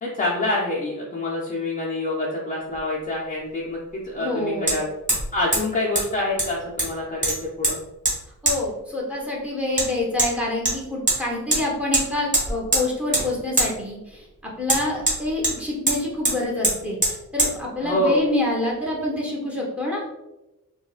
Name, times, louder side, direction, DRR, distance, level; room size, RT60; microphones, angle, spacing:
voice 1, 0.0-4.9 5.3-7.8 17.8-18.2, left 2 dB, 25° left, -4 dB, 0.4 m, -26 dB
Hammer, 2.7-2.8 4.7-4.8 5.1-5.3 5.5-5.6 6.0-6.1 6.4-6.9 7.2-7.7 8.1-8.2 8.5-8.6 9.8-9.9 10.2-10.3 10.7-11.2 11.5-11.6 11.9-12.0 12.3-12.8 13.1-13.3 13.6-13.7 14.7-15.6 15.9-16.0 16.2-16.4 16.6-16.8 17.0-17.1 17.4-17.5, right 1 dB, 25° right, 1.0 m, -21 dB
voice 2, 4.2-4.7 8.4-20.1, left 1 dB, 5° right, -2 dB, 0.8 m, -27 dB
4.6 x 2.1 x 2.4 m, 0.97 s
wide cardioid pair, 160°, 33 cm